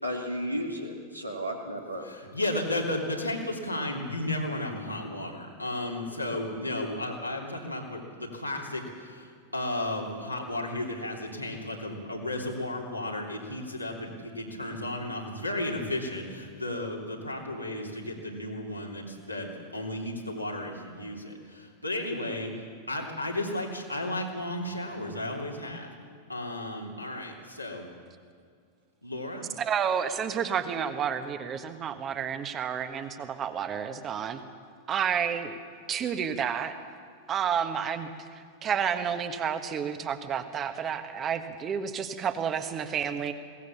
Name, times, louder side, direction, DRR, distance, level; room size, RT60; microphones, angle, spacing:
voice 1, 0.0-2.1, equal, 90° right, 1 dB, 2.7 m, -33 dB
voice 2, 2.0-25.9 26.3-27.9 29.0-29.5, left 1 dB, 90° left, -1 dB, 3.2 m, -34 dB
voice 3, 29.6-34.4 34.9-35.6 35.9-36.8 37.3-43.3, right 7 dB, 30° right, 9 dB, 1.5 m, -30 dB
21.5 x 18.0 x 7.1 m, 2.1 s
figure-of-eight pair, 90°, 0 cm